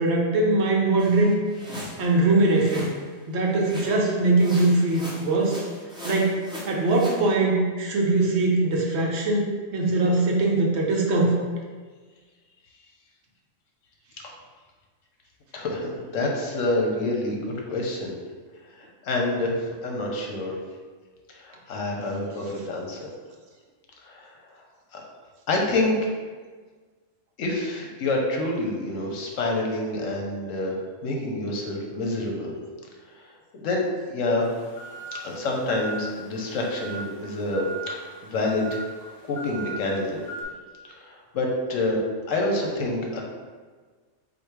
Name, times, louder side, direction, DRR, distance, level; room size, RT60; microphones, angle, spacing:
voice 1, 0.0-1.4 2.0-2.9 3.3-5.6 6.0-6.4 6.7-11.5, right 2 dB, 65° right, -1 dB, 0.9 m, -21 dB
sound 1, 1.0-3.1 3.6-4.1 4.4-7.2, equal, 5° right, 0.7 m, -39 dB
voice 2, 15.5-18.1 18.8-19.6 19.8-20.6 21.4-23.1 24.0-24.3 24.9-25.0 25.5-26.1 27.4-30.7 31.0-32.5 33.5-34.5 35.2-38.8 39.3-40.2 40.9-42.0 42.3-43.2, left 2 dB, 80° left, 0 dB, 1.1 m, -27 dB
sound 2, 34.4-40.4, right 2 dB, 35° left, 0.7 m, -39 dB
4.2 x 2.6 x 4.6 m, 1.4 s
omnidirectional pair, 1.3 m